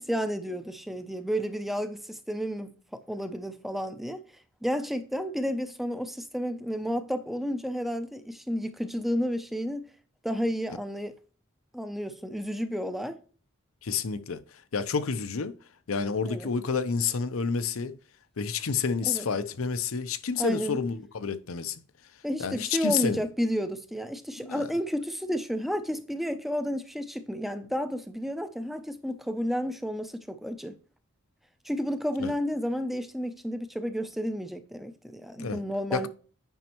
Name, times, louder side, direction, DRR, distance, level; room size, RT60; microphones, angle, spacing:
voice 1, 0.0-4.2 4.6-9.9 10.2-11.1 11.7-13.2 16.3-16.5 19.0-19.3 20.4-20.8 22.2-30.8 31.6-36.1, equal, ahead, 0.4 m, -31 dB
voice 2, 13.8-15.5 15.9-17.9 18.4-21.8 22.4-23.2 24.4-24.7 32.2-32.3 35.4-35.6 35.9-36.1, left 5 dB, 85° left, 0.7 m, -29 dB
9.1 x 5.2 x 3.0 m
head